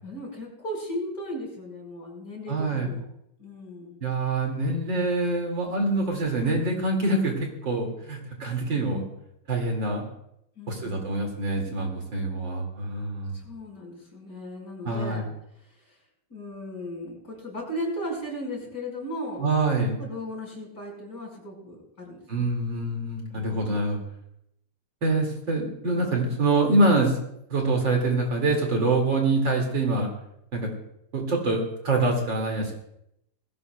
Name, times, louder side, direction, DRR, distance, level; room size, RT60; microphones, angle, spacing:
voice 1, 0.0-3.0 3.4-4.1 10.6-11.2 13.3-15.3 15.8-16.0 16.3-19.5 20.0-22.5 23.3-23.6, equal, 40° left, -2 dB, 5.5 m, -36 dB
voice 2, 2.5-2.9 4.0-9.1 9.5-10.1 10.7-13.4 14.8-15.2 19.4-20.0 22.3-24.0 25.0-27.2 27.5-30.1 30.5-30.7 31.1-32.7, right 2 dB, 60° right, 1 dB, 2.9 m, -25 dB
20.0 x 17.0 x 2.2 m, 0.77 s
omnidirectional pair, 2.4 m